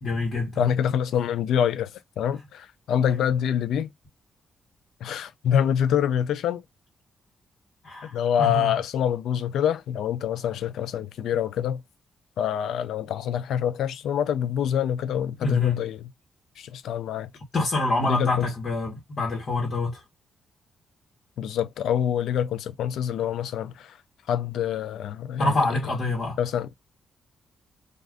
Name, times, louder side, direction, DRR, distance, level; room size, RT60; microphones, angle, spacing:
voice 1, 0.0-0.6 7.8-8.7 15.4-15.8 17.5-20.0 25.4-26.4, left 2 dB, 55° left, 1.2 m, -26 dB
voice 2, 0.6-1.9 2.2-3.9 5.0-6.6 8.0-11.8 12.4-16.0 16.6-17.3 18.0-18.5 21.4-24.0 24.3-25.6 26.4-26.7, left 9 dB, 85° left, 0.3 m, -26 dB
2.4 x 2.4 x 3.4 m
cardioid pair, 105°, 0 cm